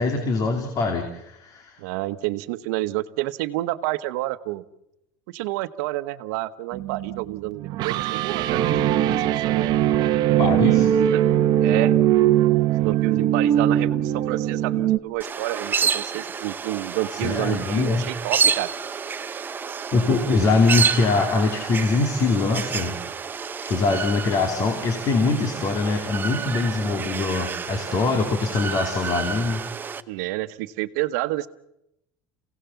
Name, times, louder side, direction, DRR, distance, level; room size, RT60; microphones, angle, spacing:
voice 1, 0.0-1.8 10.4-10.9 17.1-18.0 19.9-23.0 23.7-29.6, left 3 dB, 40° left, 4 dB, 2.7 m, -23 dB
voice 2, 1.8-4.6 5.3-9.7 10.4-11.2 11.6-12.0 12.7-18.7 30.1-31.5, right 17 dB, 75° right, 13 dB, 1.1 m, -29 dB
sound 1, 6.7-15.0, right 11 dB, 50° right, 0.9 m, -21 dB
sound 2, 15.2-30.0, right 6 dB, 20° right, 0.8 m, -29 dB
28.5 x 17.0 x 7.1 m, 0.85 s
supercardioid pair, 135°, 9 cm